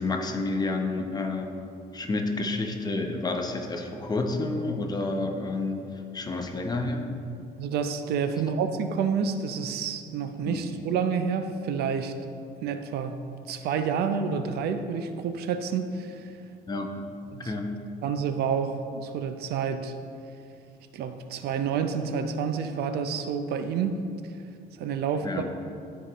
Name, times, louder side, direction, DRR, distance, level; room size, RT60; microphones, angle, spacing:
voice 1, 0.0-1.5 1.9-5.8 6.1-7.1 10.4-10.6 16.7-17.0 17.4-17.7 25.2-25.4, left 2 dB, 25° left, 3 dB, 0.8 m, -29 dB
voice 2, 7.6-12.1 12.6-16.3 17.3-17.5 18.0-19.9 20.9-24.0 24.8-25.4, right 6 dB, 70° right, 8 dB, 0.5 m, -29 dB
12.5 x 4.8 x 3.0 m, 2.5 s
cardioid pair, 110°, 17 cm